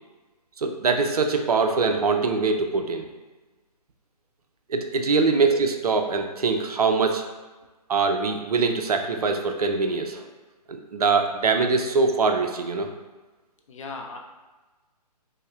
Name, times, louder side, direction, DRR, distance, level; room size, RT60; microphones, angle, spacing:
voice 1, 0.6-3.0 4.7-7.2 7.9-10.3 10.7-12.9, right 4 dB, 65° right, 5 dB, 0.5 m, -23 dB
voice 2, 13.7-14.2, left 3 dB, 50° left, 2 dB, 0.5 m, -37 dB
5.2 x 2.1 x 2.3 m, 1.2 s
figure-of-eight pair, 135°, 21 cm